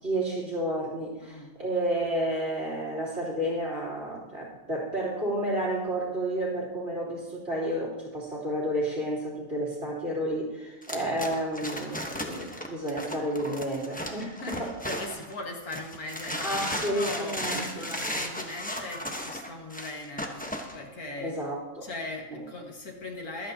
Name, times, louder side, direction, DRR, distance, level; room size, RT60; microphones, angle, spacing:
voice 1, 0.0-14.7 16.4-17.8 21.2-21.9 22.3-22.4, right 1 dB, 50° right, -2 dB, 3.9 m, -31 dB
voice 2, 1.2-1.6 14.4-20.4 20.7-21.4 21.8-23.5, left 2 dB, 80° left, 0 dB, 2.2 m, -39 dB
sound 1, 10.8-15.3 15.7-20.8, equal, 5° left, 1.0 m, -35 dB
23.0 x 8.6 x 2.9 m, 1.1 s
omnidirectional pair, 1.5 m